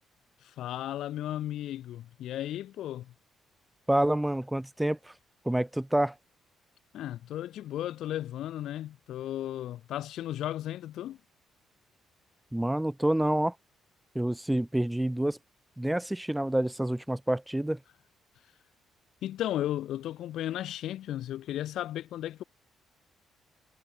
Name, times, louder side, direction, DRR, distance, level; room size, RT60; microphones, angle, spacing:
voice 1, 0.4-3.1 6.9-11.2 19.2-22.4, left 12 dB, 80° left, 3.9 m, -35 dB
voice 2, 3.9-5.1 5.5-6.2 12.5-13.5 14.2-15.4 15.8-17.8, right 1 dB, 5° right, 1.8 m, -28 dB
cardioid pair, 90°, 0 cm